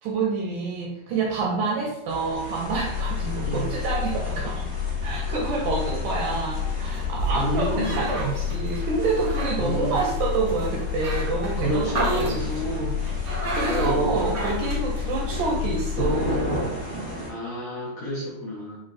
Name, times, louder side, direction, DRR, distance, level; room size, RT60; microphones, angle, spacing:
voice 1, 0.0-4.7 5.0-13.0 13.2-16.6, right 4 dB, 80° right, -1 dB, 1.8 m, -27 dB
sound 1, 2.1-17.3, equal, 50° left, 1.0 m, -36 dB
sound 2, 2.7-16.4, left 7 dB, 85° left, 2.3 m, -30 dB
sound 3, 5.3-15.6, right 2 dB, 55° right, 0.9 m, -34 dB
voice 2, 7.3-8.1 9.6-10.0 11.6-12.8 13.7-14.4 17.3-18.8, left 1 dB, 70° left, -8 dB, 1.7 m, -30 dB
7.2 x 2.5 x 2.4 m, 0.83 s
omnidirectional pair, 4.0 m